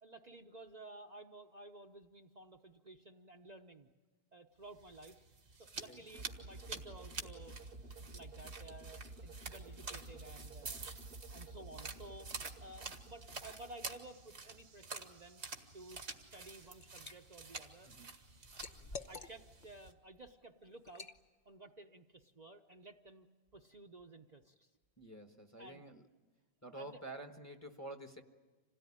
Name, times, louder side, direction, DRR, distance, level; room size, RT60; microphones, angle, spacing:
voice 1, 0.0-3.9 4.3-5.2 5.6-10.9 11.3-15.4 15.7-17.9 18.7-18.8 19.1-21.1 21.5-23.3 23.5-24.7 25.6-25.8 26.7-27.0, right 2 dB, 40° right, 3 dB, 0.9 m, -54 dB
sound 1, 4.7-19.9, right 4 dB, 85° right, 1.8 m, -49 dB
sound 2, 6.1-14.3, right 2 dB, 60° right, 1.3 m, -52 dB
Liquid, 16.3-17.2 17.6-19.7 20.1-20.3 20.9-21.2, left 3 dB, 45° left, 1.0 m, -49 dB
voice 2, 25.0-26.0 26.6-28.2, right 1 dB, 15° left, 5 dB, 1.3 m, -49 dB
27.0 x 17.5 x 10.0 m, 1.3 s
omnidirectional pair, 1.1 m